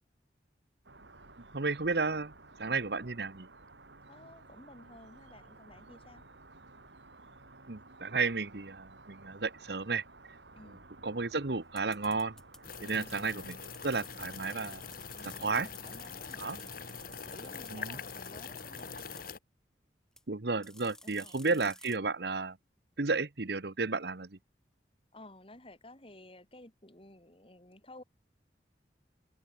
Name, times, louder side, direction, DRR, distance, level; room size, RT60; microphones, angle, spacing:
sound 1, 0.8-19.3, right 3 dB, 85° right, 4.3 m, -55 dB
voice 1, 1.5-2.3 2.6-3.5 7.7-10.0 11.0-12.4 12.8-14.8 15.2-15.7 16.4-16.6 17.7-18.0 20.3-22.6 23.0-24.4, right 4 dB, 65° right, 1.1 m, -33 dB
voice 2, 4.1-6.2 10.6-10.9 12.8-13.3 15.1-17.0 17.3-19.0 21.0-21.7 25.1-28.0, left 1 dB, 30° left, 6.1 m, -54 dB
sound 2, 11.8-17.7 18.1-19.3 20.2-20.3 20.6-22.0, left 1 dB, 5° left, 2.5 m, -53 dB
sound 3, 12.6-19.4, left 6 dB, 55° left, 1.6 m, -44 dB
open air
head